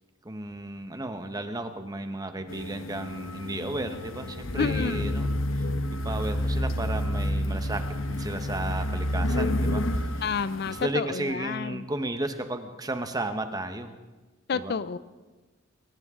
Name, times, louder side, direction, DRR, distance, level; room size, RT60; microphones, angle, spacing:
voice 1, 0.2-5.3 5.5-5.6 6.0-9.8 10.1-10.2 10.6-13.9 14.5-14.7, right 1 dB, 20° right, 8 dB, 1.1 m, -33 dB
sound 1, 2.5-10.8, left 1 dB, 90° left, 1.0 m, -29 dB
voice 2, 4.6-5.0 10.2-11.8 14.5-15.0, left 5 dB, 55° left, 15 dB, 0.5 m, -30 dB
21.0 x 17.5 x 3.7 m, 1.2 s
head